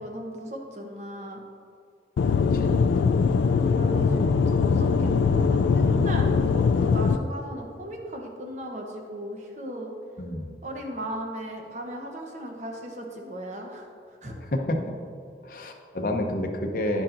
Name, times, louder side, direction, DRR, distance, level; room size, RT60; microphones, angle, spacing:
voice 1, 0.0-1.4 3.7-9.9 10.6-14.3, right 1 dB, 40° right, 1 dB, 0.9 m, -37 dB
Aircraft / Engine, 2.2-7.2, left 5 dB, 85° left, 0.3 m, -21 dB
voice 2, 2.5-3.0 10.2-10.5 14.5-14.8 15.4-17.0, left 1 dB, 50° left, 3 dB, 0.7 m, -29 dB
10.0 x 7.2 x 2.6 m, 2.3 s
head